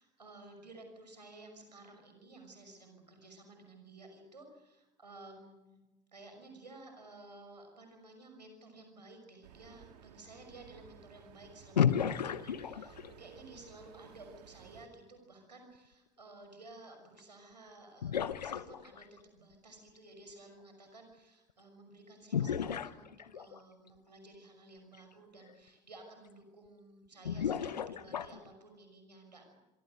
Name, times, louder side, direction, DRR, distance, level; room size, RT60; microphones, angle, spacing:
voice 1, 0.0-5.8 6.1-19.1 19.3-29.6, right 2 dB, 85° right, 5 dB, 6.0 m, -54 dB
sound 1, 9.4-14.9, right 9 dB, 70° right, 2.0 m, -57 dB
sound 2, 11.8-13.2 17.2-17.3 18.0-19.2 22.3-23.6 24.9-25.0 25.5-25.6 27.2-28.5, left 8 dB, 80° left, 0.9 m, -33 dB
25.5 x 25.5 x 6.6 m, 1.1 s
figure-of-eight pair, 60°, 21 cm